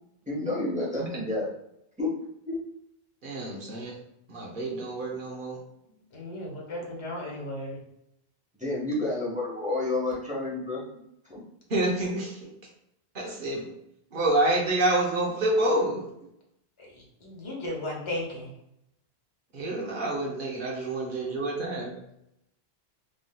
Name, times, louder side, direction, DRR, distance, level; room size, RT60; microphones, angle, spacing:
voice 1, 0.3-1.5 2.0-2.1 2.4-2.6 8.6-10.8 11.3-11.4, left 2 dB, 10° right, -5 dB, 0.8 m, -29 dB
voice 2, 3.2-4.0 4.3-5.6 6.8-6.9 11.7-12.5 13.1-13.7 14.1-16.0 19.5-22.0, right 1 dB, 60° right, -3 dB, 0.8 m, -28 dB
voice 3, 6.1-7.8 17.2-18.5, left 1 dB, 30° left, -3 dB, 0.8 m, -35 dB
3.5 x 2.6 x 2.2 m, 0.79 s
omnidirectional pair, 1.1 m